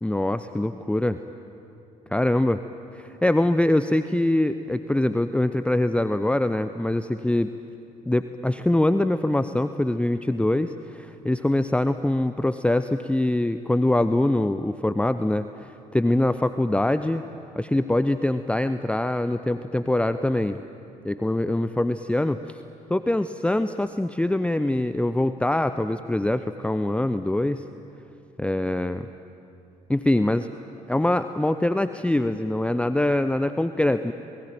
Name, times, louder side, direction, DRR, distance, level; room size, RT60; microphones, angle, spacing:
voice 1, 0.0-1.2 2.1-2.6 2.9-7.5 8.1-17.2 17.6-20.6 21.0-22.6 22.9-27.6 28.4-29.1 29.9-30.5 30.9-34.1, left 1 dB, 5° left, 11 dB, 0.8 m, -23 dB
28.5 x 21.0 x 9.1 m, 2.7 s
figure-of-eight pair, 45°, 19 cm